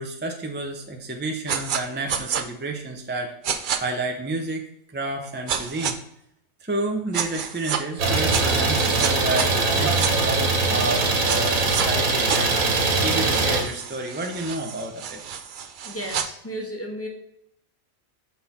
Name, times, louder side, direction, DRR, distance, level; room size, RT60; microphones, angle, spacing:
voice 1, 0.0-3.3 3.8-4.6 4.9-6.0 6.6-15.2, right 2 dB, 10° right, 2 dB, 0.6 m, -30 dB
sound 1, 1.5-1.8 2.1-2.4 3.4-3.8 5.5-5.9 7.1-7.8 8.3-10.1 11.3-11.9 12.3-16.3, right 7 dB, 55° right, 0.6 m, -29 dB
Idling, 8.0-13.6, right 3 dB, 90° right, 1.6 m, -22 dB
voice 2, 15.8-17.1, equal, 10° left, 0 dB, 1.3 m, -33 dB
6.1 x 5.5 x 4.2 m, 0.76 s
omnidirectional pair, 1.4 m